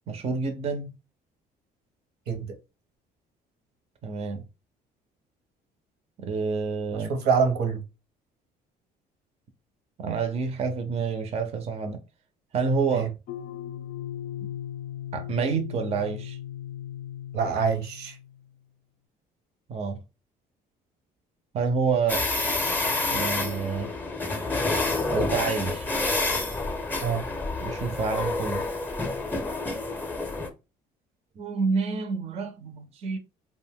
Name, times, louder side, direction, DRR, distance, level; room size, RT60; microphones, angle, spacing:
voice 1, 0.1-0.9 4.0-4.4 6.2-7.1 10.0-12.0 12.5-13.1 14.4-14.5 15.1-16.4 19.7-20.0 21.5-22.3 23.1-23.9 25.1-25.9 27.6-28.6 31.4-33.2, right 5 dB, 40° right, 0.5 m, -28 dB
voice 2, 6.9-7.8 12.9-13.1 17.3-18.2 27.0-27.3, right 6 dB, 75° right, 0.8 m, -25 dB
sound 1, 13.3-18.5, left 11 dB, 60° left, 0.4 m, -37 dB
sound 2, 22.1-30.5, left 2 dB, 10° left, 0.6 m, -28 dB
2.5 x 2.2 x 3.4 m
cardioid pair, 110°, 17 cm